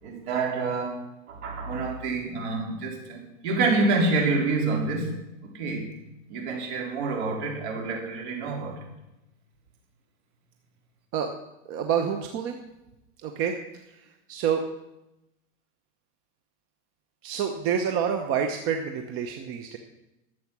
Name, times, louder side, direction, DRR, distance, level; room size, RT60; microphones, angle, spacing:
voice 1, 0.0-1.0 1.3-5.1 5.4-5.8 6.3-8.8, right 3 dB, 60° right, 0 dB, 4.1 m, -27 dB
voice 2, 11.7-12.6 13.2-13.5 14.3-14.6 17.2-19.8, right 8 dB, 35° right, 5 dB, 0.9 m, -27 dB
12.0 x 7.9 x 6.1 m, 0.92 s
supercardioid pair, 140°, 38 cm